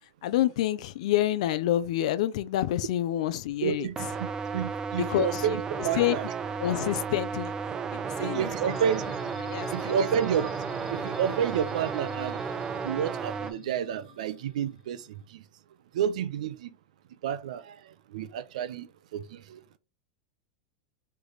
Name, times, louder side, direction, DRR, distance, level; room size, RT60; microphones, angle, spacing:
voice 1, 0.2-3.9 5.0-6.2 6.6-7.5 7.9-8.7 9.4-10.1, left 13 dB, 70° left, 0.4 m, -28 dB
voice 2, 3.6-3.9 4.5-6.2 8.2-9.0 9.7-10.5 10.9-12.4 12.8-15.0 16.0-16.7 17.2-17.6 18.1-18.9 19.1-19.2 19.5-19.6, right 9 dB, 80° right, 0.5 m, -29 dB
sound 1, 4.0-13.5, right 6 dB, 20° right, 0.4 m, -33 dB
sound 2, 8.7-15.2, left 3 dB, 85° left, 1.2 m, -46 dB
3.3 x 3.2 x 3.9 m
supercardioid pair, 150°, 4 cm